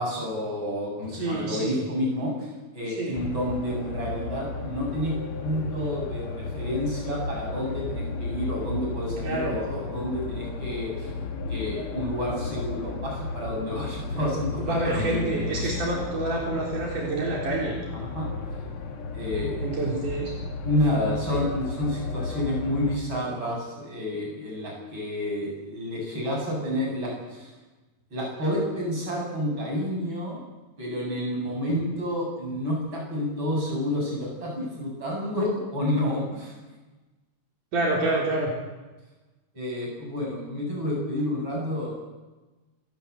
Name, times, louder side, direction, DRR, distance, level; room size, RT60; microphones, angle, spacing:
voice 1, 0.0-2.5 2.7-11.2 11.5-15.7 17.9-18.3 19.1-20.0 20.6-27.5 28.1-30.4 30.8-36.5 39.5-42.0, left 1 dB, 35° right, -1 dB, 8.2 m, -29 dB
voice 2, 1.1-1.8 3.0-3.2 9.2-9.6 14.6-17.8 19.6-20.3 37.7-38.5, right 2 dB, 75° right, -3 dB, 5.4 m, -27 dB
sound 1, 3.1-23.0, left 3 dB, 50° left, 2.2 m, -34 dB
28.0 x 12.0 x 8.3 m, 1.2 s
omnidirectional pair, 3.7 m